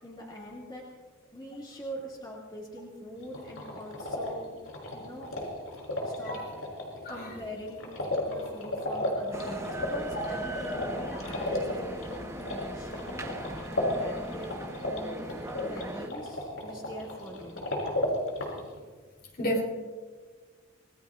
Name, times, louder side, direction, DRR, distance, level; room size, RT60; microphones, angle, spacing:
voice 1, 0.0-0.9 1.3-4.6 4.9-5.5 6.0-6.4 7.1-7.9 8.3-13.3 14.0-15.3 15.6-17.6, equal, 20° left, -4 dB, 2.6 m, -43 dB
sound 1, 3.2-18.8, left 1 dB, 90° left, 6.0 m, -35 dB
voice 2, 6.3-6.5 7.0-7.2 10.1-10.3 19.4-19.6, equal, 45° left, -1 dB, 3.7 m, -30 dB
sound 2, 9.3-16.1, right 1 dB, 15° right, 1.1 m, -39 dB
28.0 x 20.0 x 2.6 m, 1.5 s
head